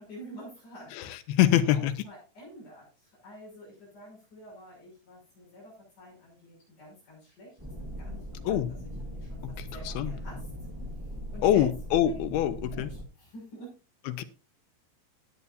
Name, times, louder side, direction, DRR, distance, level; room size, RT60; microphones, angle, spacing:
voice 1, 0.0-7.6 8.0-10.5 11.3-11.7 12.0-12.1 12.7-13.8, equal, 55° left, -5 dB, 7.7 m, -49 dB
voice 2, 0.9-1.9 8.4-8.7 9.4-10.1 11.4-12.9 14.1-14.2, left 11 dB, 80° left, 11 dB, 2.7 m, -25 dB
sound 1, 7.6-13.0, equal, 15° right, 0.9 m, -39 dB
18.0 x 8.3 x 2.6 m, 0.30 s
omnidirectional pair, 4.5 m